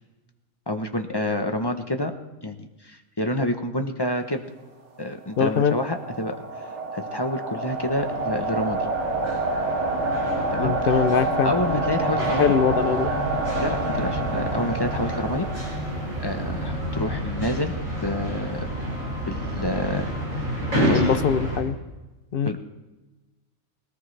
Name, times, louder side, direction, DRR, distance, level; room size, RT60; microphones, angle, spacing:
voice 1, 0.7-2.1 2.4-2.6 2.8-4.4 5.0-6.4 6.9-8.8 10.5-10.7 11.4-12.5 13.6-15.8 16.2-17.7 18.0-18.7 19.3-20.5 20.7-21.1 22.4-22.6, left 1 dB, 20° left, 5 dB, 0.7 m, -28 dB
sound 1, 5.3-16.2, right 2 dB, 60° right, 1.8 m, -28 dB
voice 2, 5.4-5.8 10.6-11.5 12.4-13.1 20.9-21.8 22.3-22.5, left 6 dB, 55° left, 12 dB, 0.7 m, -22 dB
sound 2, 7.7-21.6, equal, 85° right, 5.2 m, -30 dB
20.5 x 18.0 x 3.3 m, 1.1 s
omnidirectional pair, 1.4 m